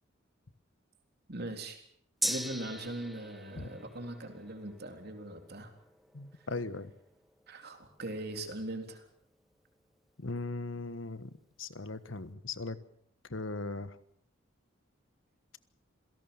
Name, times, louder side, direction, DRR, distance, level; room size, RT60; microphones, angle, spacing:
voice 1, 1.3-1.8 2.2-5.7 7.5-9.0, right 1 dB, 55° right, 6 dB, 3.7 m, -40 dB
Gong, 2.2-10.0 10.3-10.4, equal, ahead, 1.4 m, -42 dB
voice 2, 6.1-6.9 10.2-12.8 13.3-14.0, left 3 dB, 75° left, 14 dB, 1.4 m, -38 dB
27.0 x 17.5 x 7.2 m, 0.67 s
head